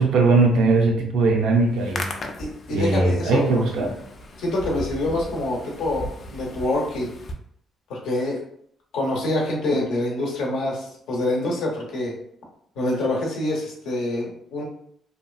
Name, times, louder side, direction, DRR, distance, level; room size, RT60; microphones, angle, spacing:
voice 1, 0.0-2.0 2.7-3.9, right 3 dB, 80° right, 2 dB, 0.5 m, -19 dB
Hands, 1.7-7.3, left 1 dB, 45° left, 0.4 m, -37 dB
voice 2, 2.4-3.6 4.4-7.1 7.9-8.4 8.9-12.1 12.8-14.6, left 1 dB, 85° left, -2 dB, 0.8 m, -26 dB
2.7 x 2.3 x 2.3 m, 0.67 s
cardioid pair, 90°, 0 cm